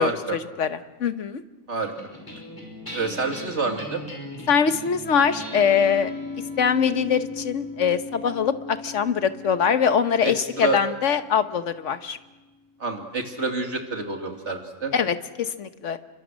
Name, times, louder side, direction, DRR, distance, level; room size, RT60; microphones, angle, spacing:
voice 1, 0.0-1.4 4.5-6.1 6.6-12.2 14.9-16.0, left 7 dB, 85° left, 10 dB, 1.4 m, -23 dB
sound 1, 1.8-12.4, left 2 dB, 15° left, 5.8 m, -38 dB
voice 2, 2.9-4.0 10.2-10.8 12.8-14.9, right 3 dB, 70° right, 3 dB, 2.9 m, -28 dB
29.0 x 24.5 x 6.3 m, 1.2 s
omnidirectional pair, 1.2 m